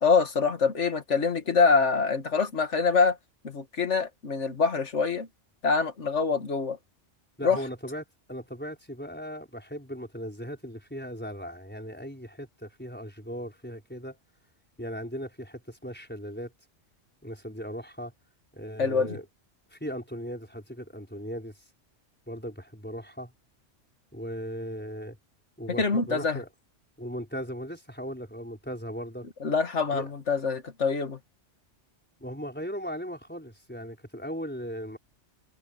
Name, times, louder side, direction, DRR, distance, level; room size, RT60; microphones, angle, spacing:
voice 1, 0.0-3.2 3.4-5.3 5.6-6.8 7.4-7.6 18.8-19.2 25.8-26.4 29.4-31.2, left 5 dB, 70° left, 2.2 m, -25 dB
voice 2, 7.4-14.2 14.8-16.5 17.2-18.1 18.5-19.2 19.7-21.6 22.3-23.3 24.1-25.2 25.6-26.5 27.0-29.3 29.9-30.1 32.2-35.0, equal, 10° left, 4.9 m, -38 dB
omnidirectional pair, 1.2 m